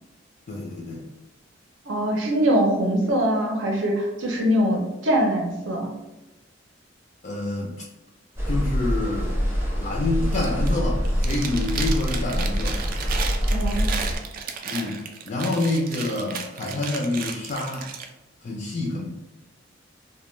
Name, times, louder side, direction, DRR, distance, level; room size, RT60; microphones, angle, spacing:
voice 1, 0.5-1.1 7.2-7.8 8.5-9.4 9.8-12.8 14.6-17.9 18.4-19.1, left 2 dB, 40° left, -2 dB, 0.3 m, -27 dB
voice 2, 1.9-5.9 13.5-14.0, equal, 80° right, 0 dB, 0.6 m, -23 dB
sound 1, 8.4-14.2, equal, 15° right, 0.7 m, -25 dB
Chewing mastication, 10.2-10.7 11.0-18.1, right 6 dB, 50° right, 0.3 m, -34 dB
2.2 x 2.1 x 3.0 m, 0.99 s
head